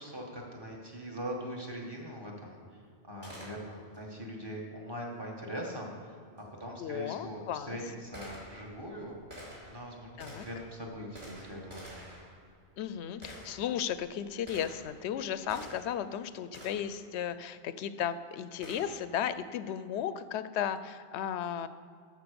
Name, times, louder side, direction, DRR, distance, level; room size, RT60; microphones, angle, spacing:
voice 1, 0.0-9.2 9.7-12.0, equal, 20° right, -2 dB, 1.7 m, -42 dB
Gunshot gunfire, 3.2-4.0 6.4-6.5 7.2-16.1 16.5-17.0 18.6-19.2, equal, 45° right, 3.2 m, -50 dB
voice 2, 6.8-7.8 10.2-10.5 12.8-21.7, left 9 dB, 75° left, 13 dB, 0.8 m, -35 dB
13.0 x 4.6 x 6.9 m, 2.2 s
omnidirectional pair, 1.2 m